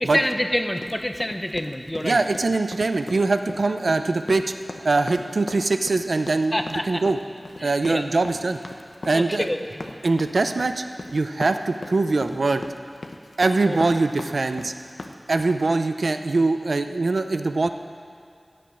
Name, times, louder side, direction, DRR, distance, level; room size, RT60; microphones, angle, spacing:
voice 1, 0.0-2.2 6.5-7.0 7.6-8.0 9.1-9.6 13.7-13.8, left 1 dB, 20° left, 6 dB, 1.0 m, -26 dB
sound 1, 0.8-15.6, left 2 dB, 80° left, 1.0 m, -38 dB
voice 2, 2.0-4.5 4.8-7.2 7.6-8.6 9.1-9.5 10.0-10.8 11.1-12.6 13.4-14.7 15.3-17.7, right 3 dB, 90° right, 8 dB, 0.7 m, -22 dB
14.0 x 7.8 x 8.8 m, 2.3 s
wide cardioid pair, 60°, 0 cm